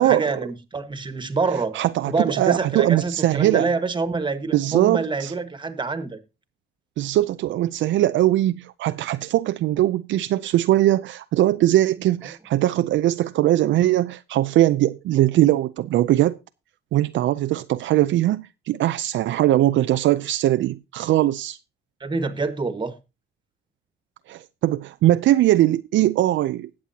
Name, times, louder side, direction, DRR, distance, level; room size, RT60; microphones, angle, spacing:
voice 1, 0.0-1.8 2.1-6.2 22.0-22.9, right 4 dB, 25° right, 1.5 m, -26 dB
voice 2, 1.7-3.7 4.5-5.3 7.0-16.4 16.9-21.6 24.3-26.7, right 14 dB, 70° right, 0.5 m, -20 dB
20.0 x 7.5 x 2.8 m
cardioid pair, 90°, 20 cm